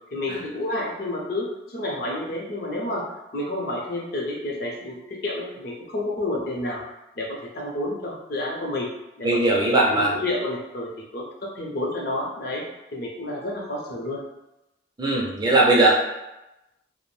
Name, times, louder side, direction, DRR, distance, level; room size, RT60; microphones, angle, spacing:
voice 1, 0.1-3.1 3.3-6.8 7.2-8.9 9.2-12.6 12.9-14.2, left 1 dB, 60° left, -2 dB, 0.6 m, -30 dB
voice 2, 9.2-10.1 15.0-15.9, right 2 dB, 25° right, -3 dB, 0.4 m, -19 dB
2.5 x 2.0 x 3.1 m, 0.94 s
head